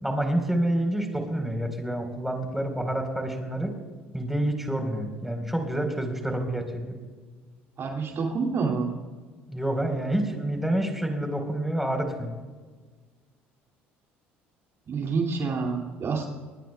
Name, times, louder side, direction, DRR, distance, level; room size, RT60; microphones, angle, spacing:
voice 1, 0.0-3.7 4.1-7.0 9.5-12.3, right 1 dB, 5° right, 4 dB, 4.1 m, -28 dB
voice 2, 7.8-8.9 14.9-16.3, right 4 dB, 45° right, 1 dB, 2.5 m, -27 dB
29.5 x 19.5 x 2.3 m, 1.4 s
hypercardioid pair, 60°, 6 cm